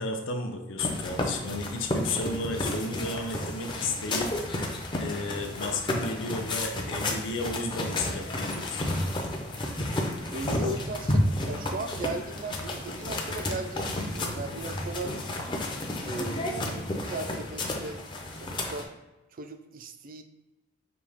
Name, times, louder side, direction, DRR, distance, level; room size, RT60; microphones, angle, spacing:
voice 1, 0.0-4.6 5.0-8.3 8.5-8.8, left 2 dB, 65° left, 4 dB, 0.6 m, -33 dB
sound 1, 0.8-18.8, left 1 dB, 25° left, 0.5 m, -32 dB
voice 2, 10.3-15.2 16.0-18.1 18.4-18.9 19.3-20.2, right 2 dB, 45° right, 8 dB, 0.4 m, -37 dB
5.2 x 2.7 x 3.5 m, 1.1 s
head